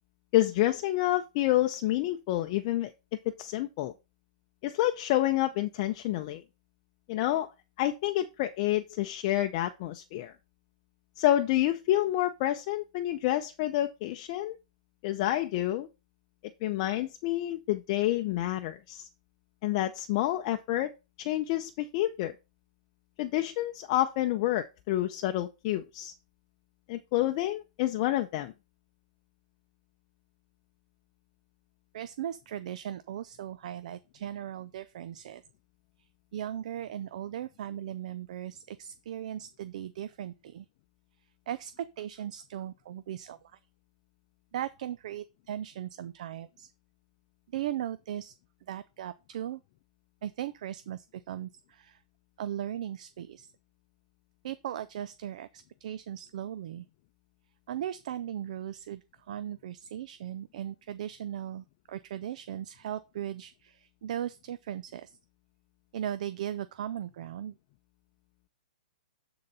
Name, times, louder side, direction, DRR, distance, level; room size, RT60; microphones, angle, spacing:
voice 1, 0.3-2.9 3.4-3.9 4.6-6.4 7.1-7.5 7.8-10.3 11.2-14.6 15.0-15.9 16.6-19.1 19.6-20.9 21.2-22.3 23.2-26.1 26.9-28.5, left 14 dB, 40° left, 0.6 m, -28 dB
voice 2, 31.9-35.4 36.3-40.7 41.5-43.6 44.5-46.7 47.5-48.4 48.7-49.6 50.2-52.0 52.4-53.5 54.4-55.5 55.8-56.8 57.7-65.2 65.9-67.5, right 11 dB, 60° right, 0.6 m, -38 dB
11.5 x 4.0 x 5.5 m
hypercardioid pair, 150°, 4 cm